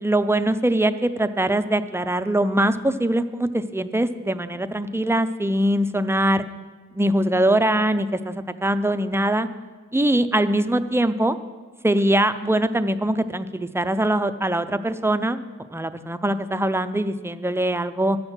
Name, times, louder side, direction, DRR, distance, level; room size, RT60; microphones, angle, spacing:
voice 1, 0.0-6.4 6.9-9.5 9.9-11.4 11.8-15.4 15.7-18.2, right 1 dB, 10° right, 10 dB, 0.3 m, -22 dB
9.5 x 6.2 x 6.5 m, 1.4 s
wide cardioid pair, 100°, 31 cm